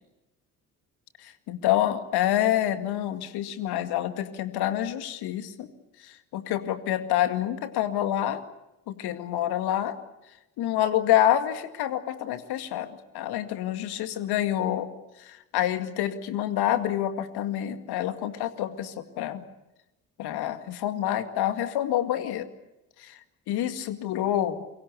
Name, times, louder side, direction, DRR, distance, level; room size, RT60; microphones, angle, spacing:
voice 1, 1.2-5.7 6.0-8.4 8.9-10.0 10.6-14.9 15.2-19.4 20.2-22.5 23.0-23.2 23.5-24.6, left 12 dB, 60° left, 9 dB, 2.2 m, -27 dB
28.5 x 24.0 x 6.9 m, 0.96 s
figure-of-eight pair, 45°, 43 cm